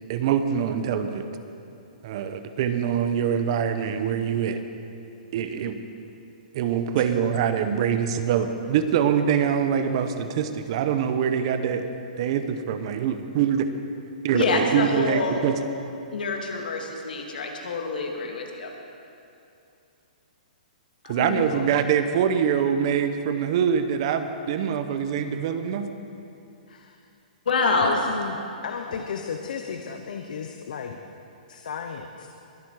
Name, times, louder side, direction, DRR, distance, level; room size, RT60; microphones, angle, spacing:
voice 1, 0.1-1.2 2.0-4.6 5.3-5.8 6.5-13.7 14.2-15.6 21.1-25.9, right 8 dB, 35° right, 9 dB, 0.7 m, -24 dB
voice 2, 14.3-15.4 16.1-18.7 27.5-28.0 28.9-29.0, left 3 dB, 85° left, 2 dB, 2.2 m, -26 dB
voice 3, 21.0-21.7 25.2-25.5 26.7-27.0 27.8-31.0 31.5-32.3, left 6 dB, 65° left, 5 dB, 0.9 m, -34 dB
22.0 x 8.5 x 4.8 m, 2.7 s
hypercardioid pair, 170°, 5 cm